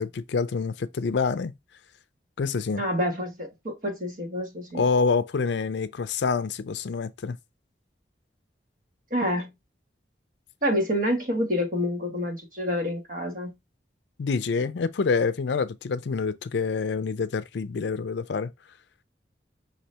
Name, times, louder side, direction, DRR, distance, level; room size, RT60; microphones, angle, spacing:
voice 1, 0.0-1.5 2.4-2.8 4.7-7.4 14.2-18.5, left 4 dB, 75° left, 0.4 m, -27 dB
voice 2, 2.8-4.8 9.1-9.5 10.6-13.6, equal, 45° right, 1.6 m, -28 dB
5.3 x 3.2 x 2.8 m
head